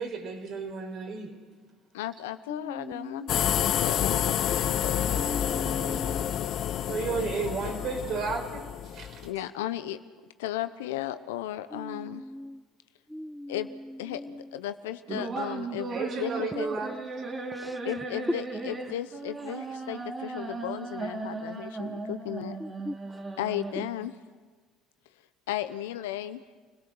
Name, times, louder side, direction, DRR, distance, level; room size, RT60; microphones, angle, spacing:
voice 1, 0.0-1.4 6.9-9.2 15.9-16.9, right 5 dB, 55° right, 3 dB, 4.6 m, -33 dB
voice 2, 1.9-5.0 9.2-10.0 10.4-12.2 13.5-13.7 14.0-15.9 16.2-16.7 17.8-22.6 23.4-24.1 25.5-26.4, left 13 dB, 85° left, 11 dB, 0.9 m, -35 dB
voice 3, 2.5-3.3 5.1-6.3 11.7-12.6 13.1-14.6 15.1-15.4 17.5-17.8 18.7-18.9 22.6-23.2 23.8-23.9, equal, 5° left, 13 dB, 0.6 m, -40 dB
sound 1, 3.3-9.3, left 10 dB, 60° left, 1.0 m, -29 dB
sound 2, 15.1-24.1, right 3 dB, 35° right, 3.8 m, -36 dB
29.0 x 18.0 x 6.3 m, 1.4 s
hypercardioid pair, 70°, 0 cm